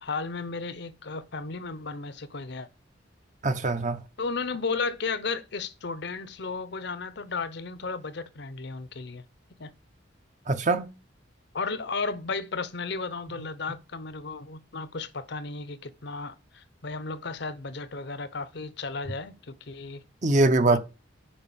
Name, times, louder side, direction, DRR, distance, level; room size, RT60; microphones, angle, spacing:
voice 1, 0.0-2.7 4.2-9.2 9.6-9.7 11.5-20.0 20.7-20.8, left 4 dB, 60° left, 0.8 m, -34 dB
voice 2, 3.4-4.0 10.5-10.9 20.2-20.8, right 2 dB, 40° right, 0.9 m, -22 dB
8.9 x 5.3 x 7.0 m
head